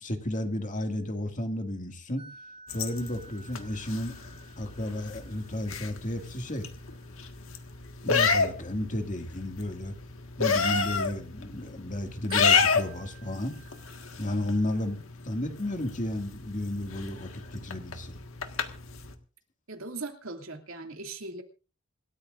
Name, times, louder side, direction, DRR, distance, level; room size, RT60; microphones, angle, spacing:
voice 1, 0.0-2.2 2.7-4.2 4.6-6.7 8.0-10.0 10.4-13.5 14.2-18.2, left 1 dB, 40° left, 5 dB, 2.2 m, -33 dB
sound 1, 2.2-11.6 12.0-14.8, right 5 dB, 25° right, 3.9 m, -53 dB
sound 2, 2.7-19.1, left 5 dB, 80° left, 1.7 m, -31 dB
voice 2, 19.7-21.4, right 3 dB, 90° right, 4 dB, 2.5 m, -39 dB
27.0 x 13.5 x 2.6 m, 0.35 s
head